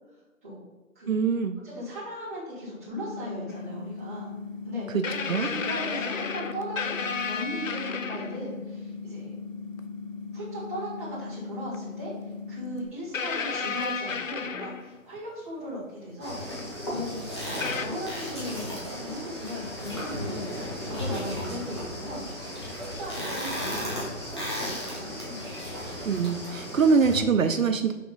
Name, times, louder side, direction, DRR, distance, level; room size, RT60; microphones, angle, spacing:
voice 1, 1.1-1.6 4.9-5.5 26.0-27.9, right 5 dB, 70° right, 8 dB, 0.6 m, -24 dB
voice 2, 1.6-4.3 4.6-4.9 5.4-9.3 10.3-12.1 12.5-22.2 22.7-25.6, equal, 10° right, -11 dB, 1.3 m, -38 dB
sound 1, 2.9-12.9, left 4 dB, 45° left, 1.2 m, -39 dB
sound 2, 3.5-3.6 5.0-8.5 9.8-9.9 11.7-11.8 13.1-15.2 16.6-16.7 17.6-17.9, left 5 dB, 65° left, 0.7 m, -32 dB
sound 3, 16.2-27.2, left 1 dB, 20° left, 1.0 m, -35 dB
6.0 x 3.6 x 4.9 m, 1.2 s
hypercardioid pair, 175°, 42 cm